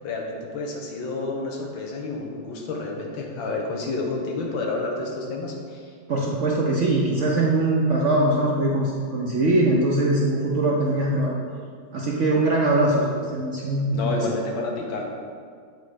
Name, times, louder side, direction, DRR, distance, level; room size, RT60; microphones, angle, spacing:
voice 1, 0.0-6.0 13.9-15.1, left 3 dB, 90° left, 0 dB, 1.8 m, -30 dB
voice 2, 6.1-11.3 11.9-14.2, right 2 dB, 60° right, -3 dB, 0.8 m, -22 dB
7.9 x 4.2 x 5.0 m, 2.1 s
omnidirectional pair, 2.0 m